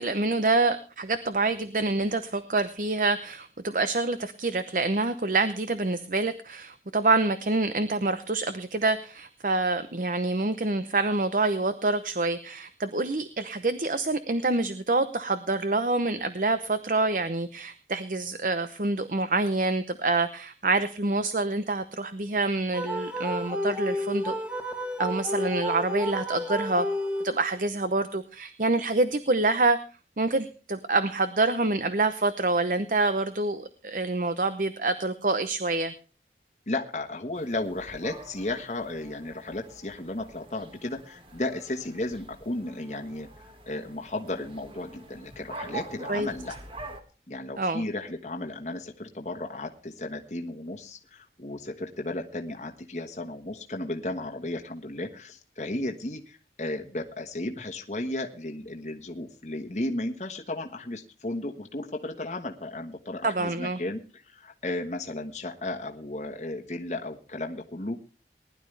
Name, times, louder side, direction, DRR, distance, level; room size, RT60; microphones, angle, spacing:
voice 1, 0.0-24.4 25.0-26.9 27.2-29.8 30.2-35.9 46.1-46.3 47.6-47.8 63.2-63.8, right 3 dB, 50° right, 11 dB, 0.8 m, -26 dB
sound 1, 22.7-27.6, equal, 5° right, 1.5 m, -31 dB
voice 2, 36.7-46.5 47.3-68.0, left 2 dB, 40° left, 3 dB, 1.3 m, -34 dB
sound 2, 37.3-47.0, right 3 dB, 30° right, 1.7 m, -45 dB
19.5 x 11.5 x 3.3 m, 0.36 s
head